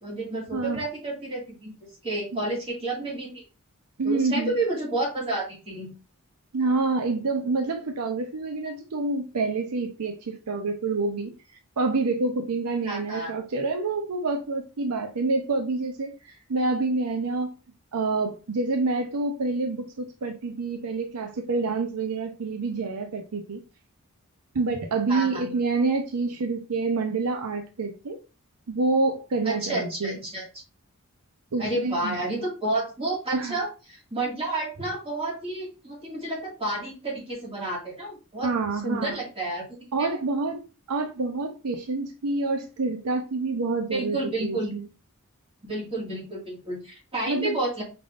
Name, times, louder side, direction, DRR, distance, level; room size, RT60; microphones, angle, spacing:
voice 1, 0.0-1.7 2.0-3.4 4.0-5.9 12.8-13.3 25.1-25.5 29.4-30.5 31.6-38.5 38.8-39.6 40.0-40.2 43.9-44.7 45.6-47.8, right 2 dB, 25° right, 1.9 m, -30 dB
voice 2, 0.5-0.8 2.3-2.4 4.0-4.5 6.5-11.3 11.8-17.5 17.9-23.6 24.5-28.2 28.7-30.2 31.5-32.1 33.3-33.6 38.4-39.2 39.9-44.9 47.3-47.6, right 3 dB, 80° right, 0.6 m, -27 dB
5.1 x 3.4 x 2.5 m
head